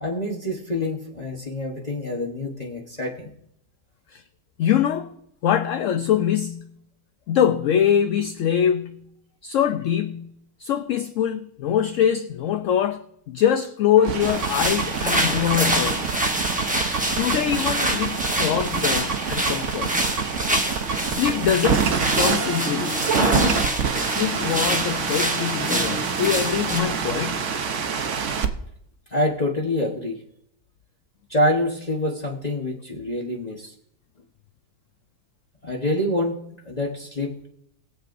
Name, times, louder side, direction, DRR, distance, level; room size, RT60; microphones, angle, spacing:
voice 1, 0.0-3.3 29.1-30.2 31.3-33.7 35.6-36.4 36.6-37.5, left 1 dB, 30° left, 1.2 m, -26 dB
voice 2, 4.6-5.1 5.4-6.8 7.3-9.1 9.4-10.3 10.6-16.1 17.2-19.9 21.0-23.6 24.0-27.5, left 9 dB, 65° left, 0.8 m, -23 dB
sound 1, 14.0-28.5, right 6 dB, 55° right, 1.1 m, -26 dB
sound 2, 14.2-26.8, right 1 dB, 5° right, 0.6 m, -26 dB
21.0 x 7.6 x 2.6 m
omnidirectional pair, 1.6 m